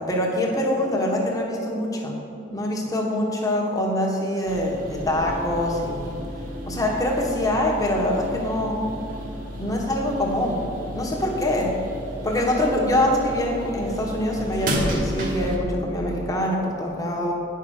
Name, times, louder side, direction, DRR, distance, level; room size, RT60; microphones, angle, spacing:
voice 1, 0.0-2.2 2.5-6.2 6.7-8.8 9.6-11.7 12.2-17.3, left 1 dB, 20° left, -1 dB, 1.3 m, -24 dB
sound 1, 4.5-15.6, equal, 45° right, 1.2 m, -33 dB
9.4 x 5.7 x 6.5 m, 2.7 s
head